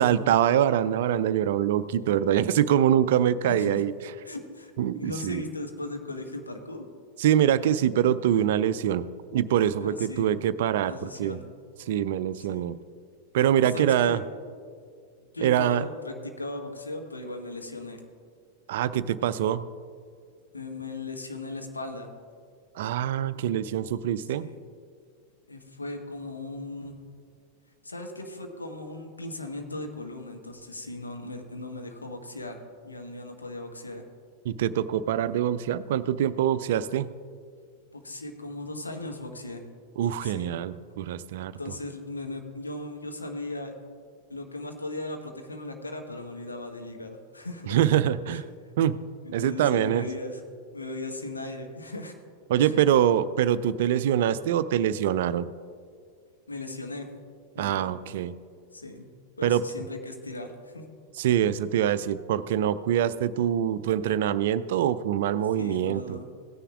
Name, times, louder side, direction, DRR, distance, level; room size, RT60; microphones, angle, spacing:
voice 1, 0.0-3.9 4.8-5.4 7.2-9.1 9.3-11.4 11.9-12.7 13.3-14.2 15.4-15.8 18.7-19.7 22.8-24.5 34.5-37.1 40.0-41.5 47.7-48.4 48.8-49.0 49.3-50.0 52.5-55.5 57.6-58.3 59.4-59.6 61.2-66.2, right 10 dB, 55° right, 15 dB, 0.3 m, -24 dB
voice 2, 3.5-3.8 4.2-6.9 9.8-10.3 10.9-11.5 12.4-12.7 13.7-14.2 15.3-18.0 20.5-22.1 24.2-24.6 25.5-27.0 27.8-32.6 32.8-34.0 37.9-39.6 40.2-40.5 41.6-43.7 44.3-47.8 48.3-48.4 49.2-50.4 50.7-52.1 52.6-52.8 56.5-57.1 57.6-57.9 58.7-59.1 59.4-60.9 65.6-66.3, left 2 dB, 80° left, 4 dB, 1.1 m, -37 dB
17.0 x 9.9 x 2.4 m, 2.1 s
figure-of-eight pair, 90°, 0 cm